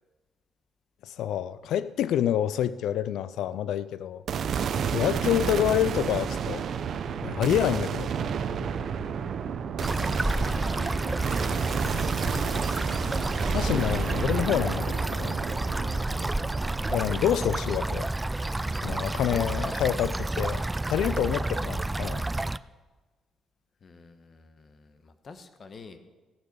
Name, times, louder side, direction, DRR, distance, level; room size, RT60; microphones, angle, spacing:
voice 1, 1.0-4.2 4.9-6.6 7.2-8.1 13.5-15.3 16.9-18.1 18.8-20.6 20.9-22.2, left 11 dB, 80° left, 0.4 m, -27 dB
sound 1, 4.3-18.6, right 7 dB, 60° right, 0.7 m, -31 dB
sound 2, 9.8-22.6, right 2 dB, 15° right, 0.3 m, -30 dB
voice 2, 10.1-10.6 11.2-13.5 23.8-26.0, left 4 dB, 45° left, 1.2 m, -49 dB
sound 3, 11.5-13.1 13.6-15.8, left 2 dB, 65° left, 4.4 m, -53 dB
15.5 x 6.6 x 6.8 m
cardioid pair, 90°, 0 cm